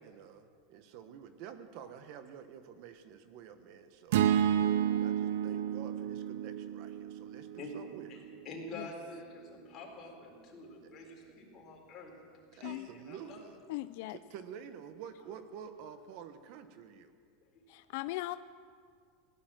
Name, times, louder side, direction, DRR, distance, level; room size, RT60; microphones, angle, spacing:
voice 1, 0.0-4.2 4.9-8.2 12.5-13.6 14.1-17.1, right 8 dB, 55° right, 10 dB, 1.1 m, -49 dB
sound 1, 4.1-8.4, right 10 dB, 75° right, 0.5 m, -31 dB
voice 2, 4.8-5.1 5.5-5.6 7.6-7.7 8.1-12.1 12.5-13.4 17.5-17.8, left 2 dB, 35° left, -1 dB, 4.0 m, -48 dB
voice 3, 13.7-14.2 17.7-18.4, left 18 dB, 65° left, 13 dB, 0.4 m, -38 dB
16.5 x 11.5 x 7.6 m, 2.1 s
supercardioid pair, 140°, 0 cm